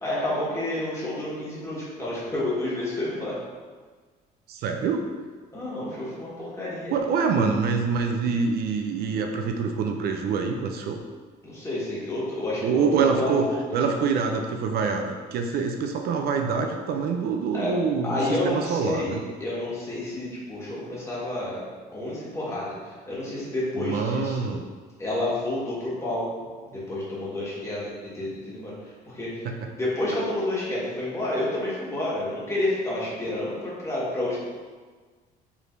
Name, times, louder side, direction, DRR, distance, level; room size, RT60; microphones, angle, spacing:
voice 1, 0.0-3.3 5.5-6.9 11.4-13.9 17.5-17.7 18.0-21.6 21.9-24.6 25.0-26.3 26.7-34.4, left 1 dB, 15° left, -8 dB, 1.5 m, -30 dB
voice 2, 4.5-5.1 6.9-11.0 12.6-13.5 13.7-19.2 23.8-24.6 29.4-29.6, right 5 dB, 65° right, 4 dB, 0.4 m, -25 dB
4.8 x 3.3 x 2.6 m, 1.5 s
cardioid pair, 110°, 17 cm